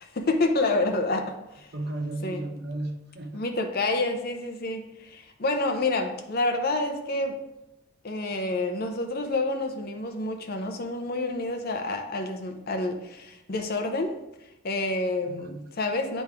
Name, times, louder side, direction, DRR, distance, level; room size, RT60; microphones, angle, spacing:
voice 1, 0.0-1.7 2.2-2.4 3.3-7.4 8.0-14.2 14.6-16.2, left 2 dB, 45° left, 5 dB, 0.7 m, -28 dB
voice 2, 1.7-3.4 15.2-15.8, right 2 dB, 50° right, 5 dB, 0.6 m, -34 dB
9.0 x 3.1 x 3.5 m, 0.90 s
head